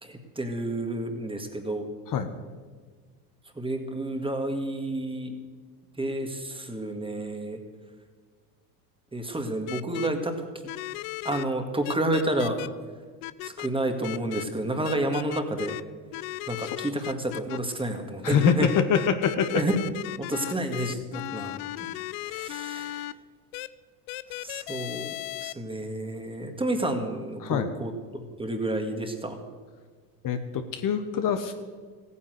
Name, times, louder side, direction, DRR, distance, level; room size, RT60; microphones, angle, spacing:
voice 1, 0.0-1.9 3.6-5.4 6.0-7.6 9.1-10.3 11.2-12.6 13.4-15.8 16.5-18.7 19.5-19.7 20.2-21.6 22.3-23.1 24.3-25.1 25.4-29.4, right 1 dB, 10° right, 5 dB, 2.0 m, -30 dB
sound 1, 9.7-10.1 10.7-11.4 11.8-12.7 13.2-13.7 14.0-14.4 14.8-15.8 16.1-17.6 18.4-23.1 23.5-23.7 24.1-25.5, left 18 dB, 70° left, 0.7 m, -36 dB
voice 2, 18.2-19.6 27.4-27.7 30.2-31.5, left 8 dB, 45° left, 8 dB, 1.2 m, -25 dB
15.0 x 9.7 x 7.9 m, 1.5 s
supercardioid pair, 90°, 46 cm